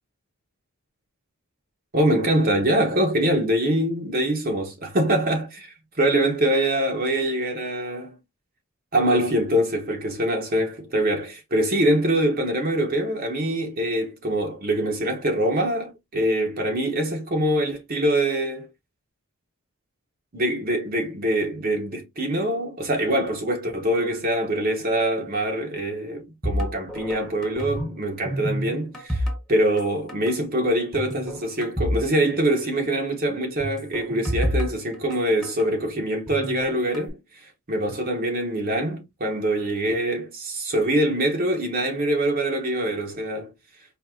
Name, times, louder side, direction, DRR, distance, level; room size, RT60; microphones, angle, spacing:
voice 1, 1.9-8.2 8.9-18.7 20.3-29.2 29.5-37.1 37.7-43.5, right 1 dB, 45° right, 1.0 m, -24 dB
sound 1, 26.4-28.0 28.2-29.8 30.1-30.3 30.9-32.1 32.3-32.4 33.6-35.7 36.3-37.1, equal, ahead, 1.1 m, -28 dB
4.4 x 3.0 x 2.7 m
head